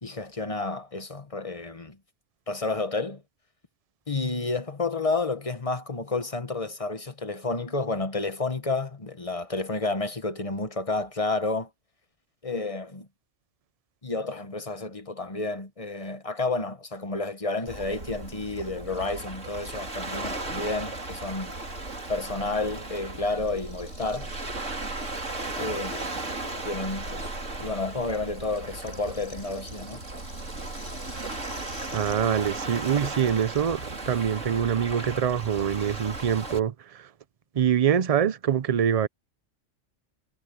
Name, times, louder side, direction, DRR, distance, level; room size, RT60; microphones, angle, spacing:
voice 1, 0.0-2.0 2.5-3.2 4.1-11.7 12.4-13.1 14.0-21.5 22.1-24.3 25.6-26.2 26.6-27.2 27.6-30.0, left 3 dB, 30° left, 1.5 m, -30 dB
Waves surf, 17.7-36.6, right 2 dB, 90° right, 3.9 m, -36 dB
Rattle (instrument), 21.2-27.6 27.9-33.8, left 1 dB, 55° left, 7.7 m, -51 dB
voice 2, 31.9-37.1 37.5-39.1, right 8 dB, 45° right, 0.5 m, -25 dB
omnidirectional pair, 1.3 m